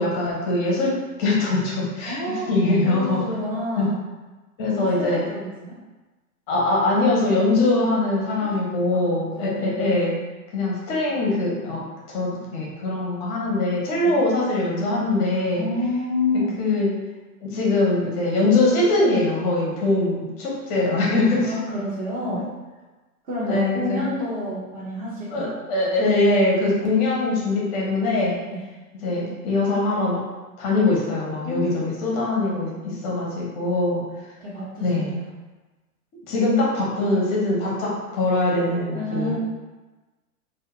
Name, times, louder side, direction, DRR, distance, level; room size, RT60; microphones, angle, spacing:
voice 1, 0.0-2.2 2.5-3.2 3.8-3.9 4.6-5.3 6.5-10.1 10.5-11.8 12.1-15.7 16.3-16.9 17.4-21.5 23.4-24.1 25.3-28.4 29.0-30.2 30.6-34.0 34.8-35.2 36.3-39.4, left 2 dB, 25° left, -4 dB, 0.5 m, -22 dB
voice 2, 2.1-2.5 2.8-3.9 4.7-5.8 8.4-8.6 8.9-9.1 9.4-9.8 14.0-14.1 15.5-16.6 21.4-22.5 23.2-25.5 28.5-28.6 31.4-31.7 34.4-35.3 38.9-39.4, left 2 dB, 35° right, -7 dB, 0.5 m, -29 dB
2.1 x 2.1 x 2.9 m, 1.2 s
hypercardioid pair, 120°, 47 cm